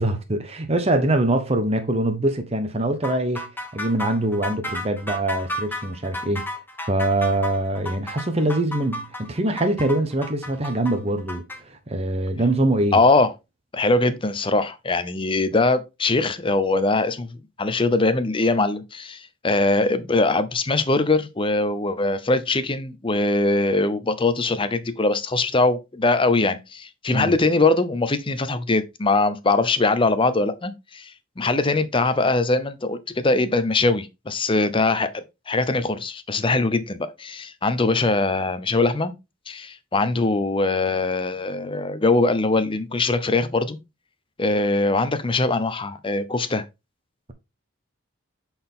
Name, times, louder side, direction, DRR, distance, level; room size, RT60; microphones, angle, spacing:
voice 1, 0.0-3.4 3.7-6.4 6.9-13.0 27.1-27.3, right 1 dB, 30° right, 1.0 m, -23 dB
sound 1, 3.0-11.6, left 1 dB, 10° left, 1.3 m, -33 dB
voice 2, 12.9-13.3 13.7-17.3 17.6-31.1 31.4-39.1 39.5-43.8 44.4-46.6, left 3 dB, 25° left, 0.7 m, -22 dB
7.6 x 4.4 x 3.7 m
head